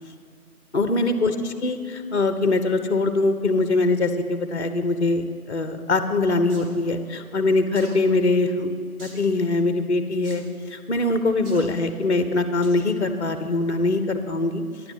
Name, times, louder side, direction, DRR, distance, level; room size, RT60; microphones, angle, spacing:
voice 1, 0.7-8.7 9.0-10.4 10.7-14.6, left 2 dB, 50° left, 9 dB, 0.6 m, -22 dB
sound 1, 6.5-6.7 7.7-8.0 9.0-9.3 10.2-10.4 11.4-11.7 12.6-12.9 13.4-13.5, right 1 dB, 70° right, 1.7 m, -43 dB
10.0 x 8.0 x 5.2 m, 2.3 s
figure-of-eight pair, 160°, 46 cm